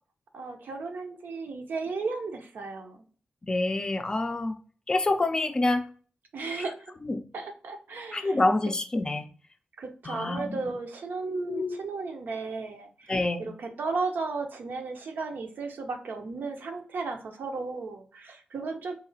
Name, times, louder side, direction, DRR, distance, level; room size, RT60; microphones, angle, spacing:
voice 1, 0.3-3.0 6.3-6.9 7.3-8.4 9.8-18.9, right 4 dB, 80° right, 4 dB, 0.6 m, -35 dB
voice 2, 3.5-4.6 4.9-5.8 7.0-7.2 8.1-9.3 10.0-10.6 11.5-11.8 13.1-13.5, left 2 dB, 25° left, 7 dB, 0.4 m, -27 dB
4.0 x 2.8 x 2.7 m, 0.41 s
wide cardioid pair, 175°, 3 cm